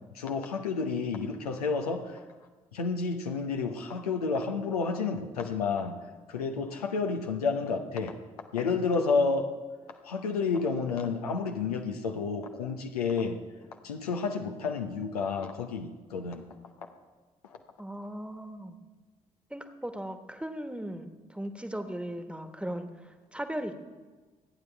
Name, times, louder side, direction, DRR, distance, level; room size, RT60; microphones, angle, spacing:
voice 1, 0.1-2.1 2.7-6.0 6.3-8.2 8.5-9.5 10.0-13.4 13.8-16.4, left 4 dB, 85° left, 4 dB, 0.8 m, -30 dB
voice 2, 17.8-18.8 19.5-23.7, right 1 dB, 5° right, 8 dB, 1.4 m, -38 dB
26.5 x 9.3 x 3.4 m, 1.3 s
figure-of-eight pair, 40°, 19 cm